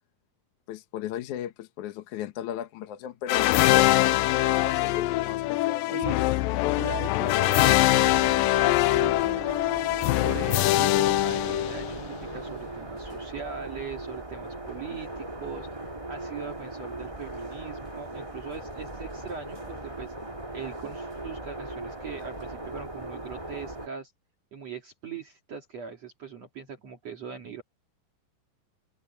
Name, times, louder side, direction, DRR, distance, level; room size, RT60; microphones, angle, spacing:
voice 1, 0.7-6.0, left 10 dB, 65° left, 2.2 m, -36 dB
sound 1, 3.3-12.2, left 17 dB, 85° left, 2.3 m, -23 dB
voice 2, 6.7-9.7 10.2-20.1 20.5-24.1 24.5-27.6, right 6 dB, 50° right, 3.2 m, -40 dB
sound 2, 7.8-23.9, right 2 dB, 10° right, 1.8 m, -38 dB
omnidirectional pair, 4.1 m